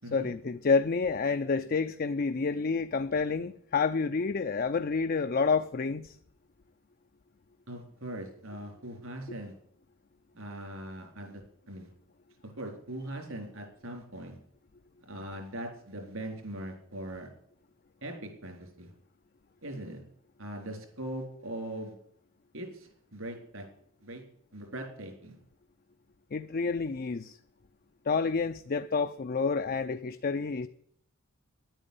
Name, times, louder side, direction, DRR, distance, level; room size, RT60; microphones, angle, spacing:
voice 1, 0.1-6.2 26.3-27.4 28.1-30.7, left 4 dB, 45° left, 0.5 m, -29 dB
voice 2, 7.7-9.5 10.3-11.4 11.7-11.9 12.4-14.4 15.1-17.3 18.0-18.9 19.6-20.0 20.4-21.9 22.5-23.7 24.0-24.2 24.5-25.4, right 1 dB, 75° right, 3.9 m, -40 dB
11.0 x 9.0 x 8.3 m
head